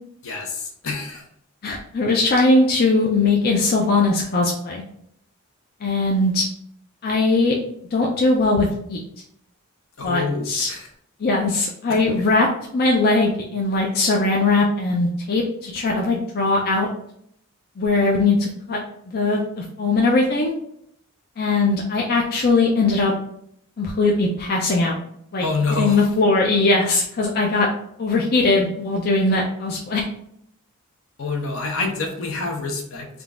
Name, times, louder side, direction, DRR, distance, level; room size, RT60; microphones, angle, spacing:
voice 1, 0.2-1.2 10.0-10.9 25.4-26.1 31.2-33.1, left 3 dB, 70° left, 2 dB, 0.8 m, -27 dB
voice 2, 1.6-4.8 5.8-6.5 7.0-7.5 7.9-9.0 10.0-10.7 11.2-12.5 12.7-16.9 17.8-18.8 19.1-20.5 21.4-23.1 23.8-25.0 25.3-27.7 28.0-30.0, left 3 dB, 45° left, -1 dB, 0.5 m, -20 dB
3.7 x 2.3 x 3.6 m, 0.70 s
head